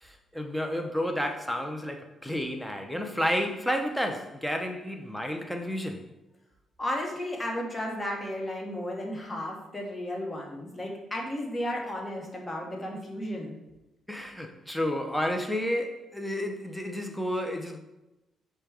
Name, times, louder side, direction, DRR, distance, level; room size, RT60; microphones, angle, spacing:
voice 1, 0.0-6.1 14.1-17.8, equal, ahead, 0.6 m, -31 dB
voice 2, 6.8-13.6, left 1 dB, 20° left, 1.1 m, -34 dB
5.1 x 2.2 x 4.6 m
cardioid pair, 90°, 0 cm